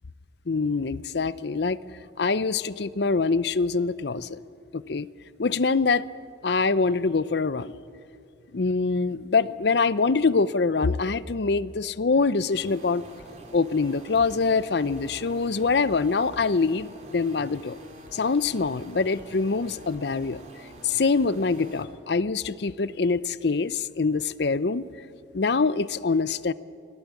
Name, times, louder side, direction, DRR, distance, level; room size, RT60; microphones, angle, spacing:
voice 1, 0.5-1.8 2.2-4.4 4.7-5.1 5.4-6.0 6.4-7.7 8.5-13.0 13.5-17.8 18.1-20.4 20.8-24.9 25.3-26.5, left 4 dB, 60° left, 17 dB, 0.6 m, -24 dB
sound 1, 12.5-21.8, right 1 dB, 35° right, 2.9 m, -46 dB
25.5 x 17.5 x 8.3 m, 2.5 s
head